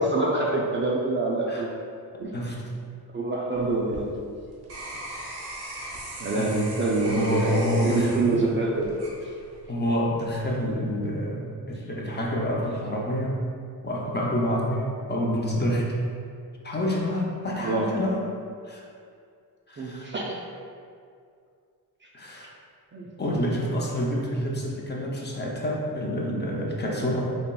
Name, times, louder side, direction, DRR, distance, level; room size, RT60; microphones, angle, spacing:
voice 1, 0.0-1.7 2.2-2.3 3.1-4.1 6.2-9.0 17.6-18.0 19.8-20.4 22.9-23.1, right 2 dB, 30° right, -2 dB, 0.4 m, -26 dB
voice 2, 2.3-2.7 6.3-6.5 7.0-8.5 9.7-13.4 13.8-16.0 16.6-18.2 18.6-18.8 19.7-20.1 22.1-22.5 23.2-27.2, equal, 25° left, -2 dB, 0.5 m, -27 dB
sound 1, 3.5-9.8 10.3-10.7, right 1 dB, 90° right, 1.0 m, -39 dB
4.1 x 3.0 x 2.2 m, 2.3 s
cardioid pair, 100°, 39 cm